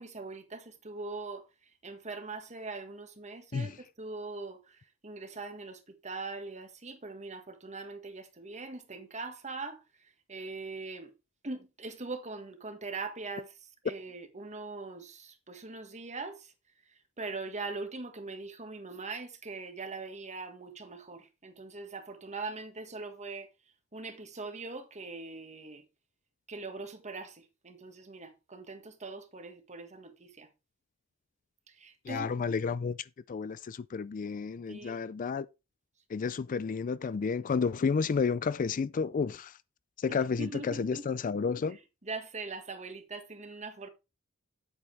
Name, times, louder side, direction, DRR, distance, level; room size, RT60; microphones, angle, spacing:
voice 1, 0.0-1.4 1.8-3.7 4.0-9.8 10.3-11.1 11.4-13.5 13.8-16.5 17.2-23.5 23.9-25.8 26.5-30.5 31.7-32.4 34.7-35.0 40.1-41.0 41.7-41.8 42.0-43.9, right 3 dB, 35° right, 1.6 m, -41 dB
voice 2, 32.0-35.5 36.1-39.6 40.0-41.8, left 5 dB, 40° left, 0.4 m, -31 dB
9.5 x 8.3 x 3.4 m
head